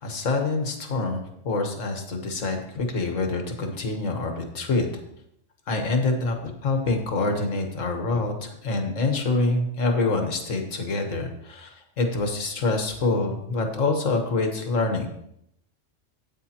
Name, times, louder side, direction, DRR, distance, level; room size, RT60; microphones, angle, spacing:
voice 1, 0.0-4.9 5.7-15.1, left 3 dB, 80° left, 4 dB, 1.6 m, -26 dB
13.0 x 8.8 x 2.9 m, 0.75 s
omnidirectional pair, 1.3 m